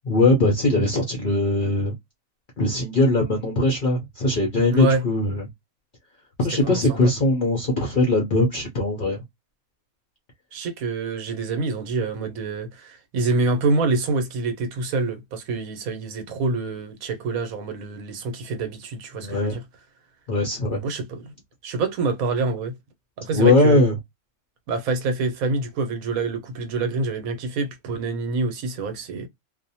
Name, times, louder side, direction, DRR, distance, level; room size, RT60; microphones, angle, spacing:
voice 1, 0.0-1.9 2.6-5.5 6.4-9.2 19.2-19.6 20.3-20.8 23.3-24.0, left 2 dB, 60° left, 0.5 m, -20 dB
voice 2, 4.7-5.0 6.6-7.0 10.5-19.6 20.7-21.3 21.6-22.7 23.2-23.8 24.7-29.3, right 3 dB, 80° right, 1.1 m, -26 dB
2.5 x 2.1 x 2.7 m
omnidirectional pair, 1.5 m